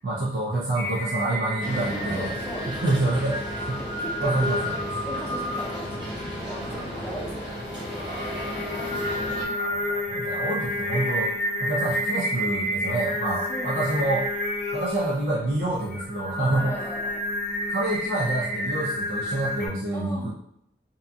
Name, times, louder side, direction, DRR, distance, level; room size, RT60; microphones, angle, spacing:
voice 1, 0.0-2.3 2.7-3.8 4.2-4.6 6.6-6.8 9.5-11.3 11.6-14.3 14.7-16.9 17.7-20.3, right 2 dB, 75° right, -4 dB, 0.5 m, -27 dB
Singing, 0.8-19.7, left 1 dB, 65° left, 0.6 m, -30 dB
sound 1, 1.6-9.5, equal, 25° right, 0.7 m, -34 dB
voice 2, 2.2-2.8 4.0-4.7 5.1-6.2 6.4-7.9 13.5-14.2 16.5-17.2 19.9-20.3, equal, 15° left, -2 dB, 0.4 m, -38 dB
2.8 x 2.5 x 2.2 m, 0.75 s
head